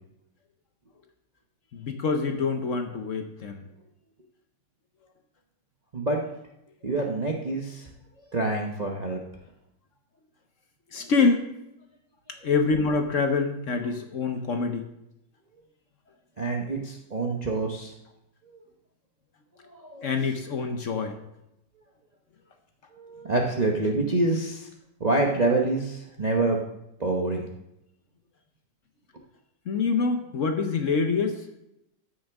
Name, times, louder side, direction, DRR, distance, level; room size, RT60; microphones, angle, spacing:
voice 1, 1.7-3.6 10.9-11.5 12.4-14.9 20.0-21.2 29.7-31.5, left 4 dB, 55° left, 6 dB, 1.0 m, -26 dB
voice 2, 6.8-7.9 8.3-9.2 16.4-17.9 18.5-18.6 19.6-20.0 22.9-24.7 25.0-26.6 27.0-27.5, right 2 dB, 35° right, -1 dB, 0.7 m, -26 dB
14.0 x 6.5 x 3.5 m, 0.83 s
omnidirectional pair, 2.0 m